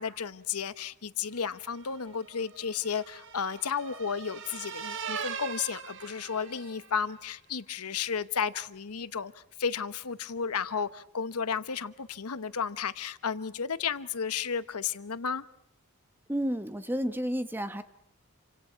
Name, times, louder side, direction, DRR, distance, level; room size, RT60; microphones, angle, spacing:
voice 1, 0.0-9.3 9.6-15.4, left 6 dB, 90° left, 1.0 m, -33 dB
sound 1, 1.6-7.0, right 6 dB, 55° right, 1.5 m, -41 dB
voice 2, 16.3-17.8, equal, 10° right, 1.1 m, -31 dB
28.5 x 25.5 x 5.8 m
head